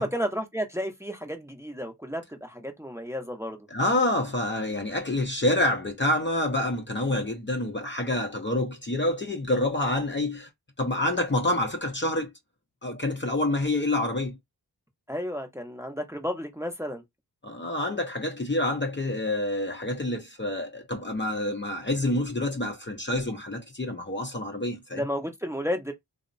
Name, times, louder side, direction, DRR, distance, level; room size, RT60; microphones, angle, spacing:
voice 1, 0.0-3.7 15.1-17.0 24.9-25.9, equal, 5° right, 0.7 m, -32 dB
voice 2, 3.7-10.5 10.8-12.3 12.8-14.4 17.4-25.0, left 1 dB, 30° left, 0.6 m, -27 dB
2.8 x 2.0 x 2.5 m
cardioid pair, 55°, 40 cm